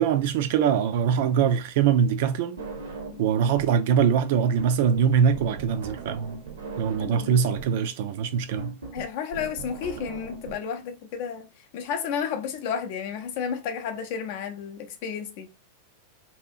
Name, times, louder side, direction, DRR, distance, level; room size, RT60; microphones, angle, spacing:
voice 1, 0.0-2.6 3.2-6.4 6.8-8.8, right 7 dB, 50° right, 0.3 m, -23 dB
sound 1, 2.6-3.8 4.1-10.6, right 3 dB, 65° right, 0.7 m, -39 dB
voice 2, 7.0-7.4 8.9-11.5 11.7-15.5, left 7 dB, 50° left, 0.5 m, -32 dB
2.7 x 2.3 x 2.6 m
figure-of-eight pair, 90°, 0 cm